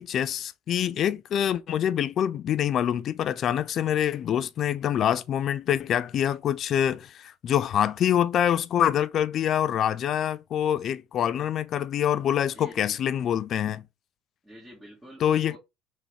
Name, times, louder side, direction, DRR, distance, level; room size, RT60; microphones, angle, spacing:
voice 1, 0.0-13.8 15.2-15.6, left 10 dB, 50° left, 0.4 m, -25 dB
voice 2, 12.5-13.0 14.4-15.6, equal, 10° right, 1.9 m, -48 dB
3.7 x 3.3 x 3.3 m
hypercardioid pair, 75°, 0 cm